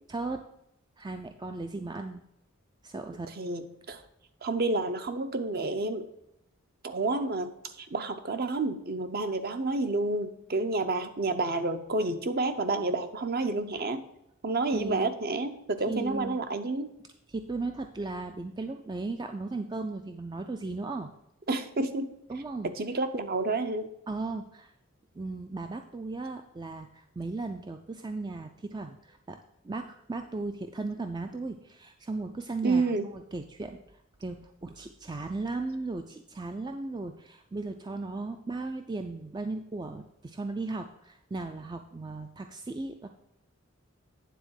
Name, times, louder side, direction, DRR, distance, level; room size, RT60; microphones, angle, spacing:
voice 1, 0.1-0.4 1.0-2.2 2.8-3.3 14.7-15.1 15.9-16.5 17.3-21.1 22.3-22.7 24.1-24.7 25.1-29.4 29.6-33.8 34.2-43.1, right 3 dB, 20° right, 6 dB, 0.3 m, -36 dB
voice 2, 3.4-4.0 4.4-6.1 6.8-14.0 14.4-16.9 21.5-22.1 22.6-23.9 32.6-33.1, right 3 dB, 45° right, 9 dB, 0.7 m, -29 dB
9.3 x 3.9 x 6.4 m, 0.80 s
head